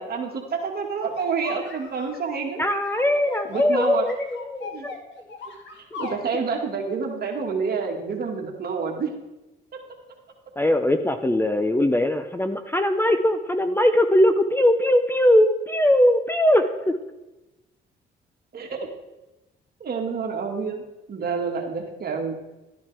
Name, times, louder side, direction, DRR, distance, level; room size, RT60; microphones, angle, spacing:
voice 1, 0.0-2.6 3.5-4.0 4.6-4.9 6.0-9.1 9.7-9.8 18.5-18.9 19.8-20.8 21.1-22.4, right 5 dB, 50° right, 1 dB, 2.0 m, -28 dB
sound 1, 1.2-2.2 2.7-6.2, left 4 dB, 65° left, 1.7 m, -37 dB
voice 2, 2.6-4.9 5.9-6.0 10.6-17.0, left 1 dB, 10° left, 8 dB, 0.6 m, -20 dB
12.0 x 10.5 x 3.4 m, 1.0 s
cardioid pair, 90°, 20 cm